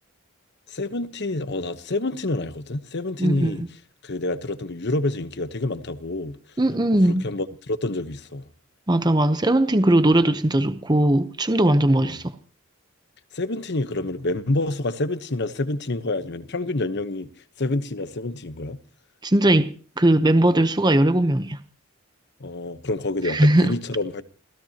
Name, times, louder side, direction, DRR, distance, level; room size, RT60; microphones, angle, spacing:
voice 1, 0.7-3.6 4.0-6.4 7.1-8.5 12.0-12.2 13.3-17.3 17.6-18.8 22.4-24.2, left 2 dB, 55° left, 1.0 m, -28 dB
voice 2, 3.2-3.7 6.6-7.2 8.9-12.2 19.2-19.7 20.0-21.6 23.2-23.8, right 1 dB, 20° right, 0.8 m, -19 dB
29.0 x 17.0 x 2.9 m
head